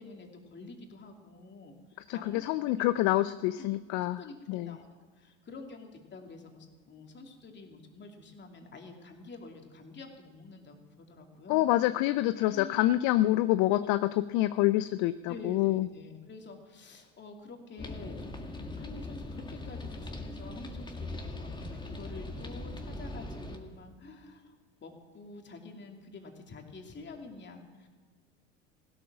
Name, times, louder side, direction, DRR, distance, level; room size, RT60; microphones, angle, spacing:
voice 1, 0.0-2.4 2.8-2.9 3.6-3.8 4.1-4.9 5.2-11.7 12.5-12.9 15.3-18.5 18.8-24.6 24.8-27.9, left 3 dB, 30° left, 2 dB, 2.7 m, -48 dB
voice 2, 2.1-4.2 4.5-4.7 11.5-15.9, left 16 dB, 55° left, 14 dB, 0.5 m, -27 dB
sound 1, 17.8-23.6, left 2 dB, 15° left, 1.9 m, -40 dB
16.0 x 12.5 x 6.1 m, 1.5 s
hypercardioid pair, 85°, 35 cm